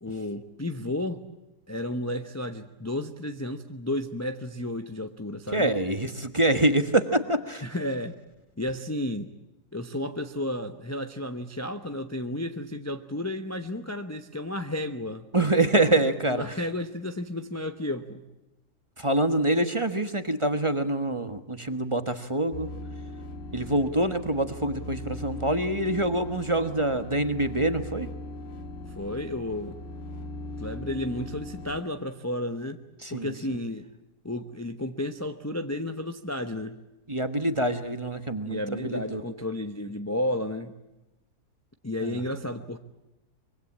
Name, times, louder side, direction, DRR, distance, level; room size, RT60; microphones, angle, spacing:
voice 1, 0.0-1.2 1.7-5.7 7.6-8.1 8.6-9.3 9.7-15.3 16.3-18.2 28.9-29.8 30.6-32.8 33.1-33.8 34.2-36.8 38.4-40.7 41.8-42.8, left 1 dB, 15° left, 7 dB, 0.8 m, -32 dB
voice 2, 5.5-7.6 15.3-16.6 19.0-22.7 23.5-28.1 33.0-33.3 37.1-39.2 42.0-42.2, right 1 dB, 20° right, 9 dB, 1.3 m, -25 dB
sound 1, 22.5-31.8, left 1 dB, 50° left, 1.9 m, -39 dB
25.0 x 23.0 x 8.6 m, 0.94 s
omnidirectional pair, 1.7 m